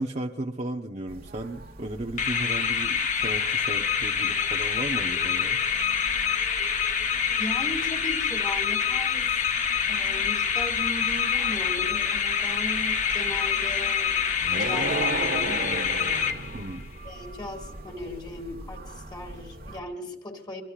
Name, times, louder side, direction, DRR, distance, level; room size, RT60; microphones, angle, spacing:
voice 1, 0.0-5.6 16.5-16.9, right 1 dB, 40° right, 1 dB, 0.9 m, -35 dB
sound 1, 1.1-19.8, right 1 dB, 55° right, 1.6 m, -43 dB
sound 2, 2.2-16.8, left 7 dB, 40° left, 1.1 m, -26 dB
voice 2, 7.4-9.3 9.8-14.2 14.4-15.6 16.3-16.4 17.0-20.6, left 1 dB, 25° left, 1 dB, 2.2 m, -38 dB
sound 3, 14.4-16.8, right 3 dB, 85° right, 1.5 m, -31 dB
23.5 x 23.0 x 2.5 m, 0.81 s
head